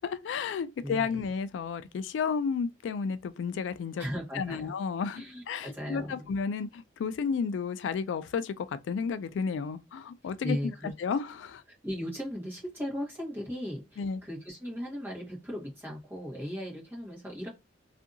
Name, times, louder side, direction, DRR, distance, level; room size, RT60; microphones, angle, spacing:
voice 1, 0.0-4.0 4.4-5.2 5.5-10.7 11.0-11.6 14.0-14.2, left 5 dB, 85° left, 0.3 m, -32 dB
voice 2, 0.8-1.2 4.0-4.7 5.1-6.3 10.4-10.9 11.7-17.5, equal, 10° right, 1.2 m, -37 dB
2.6 x 2.5 x 2.5 m
head